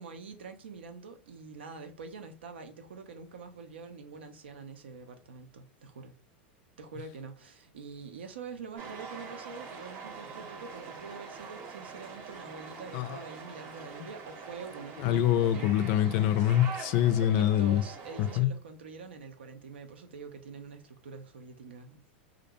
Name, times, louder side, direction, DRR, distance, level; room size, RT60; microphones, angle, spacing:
voice 1, 0.0-6.1 6.8-15.7 17.2-22.0, right 5 dB, 85° right, 0.5 m, -45 dB
sound 1, 8.8-18.4, right 5 dB, 45° right, 0.7 m, -44 dB
voice 2, 15.0-17.8 18.2-18.5, left 11 dB, 50° left, 0.3 m, -25 dB
2.5 x 2.1 x 2.8 m
hypercardioid pair, 110°, 6 cm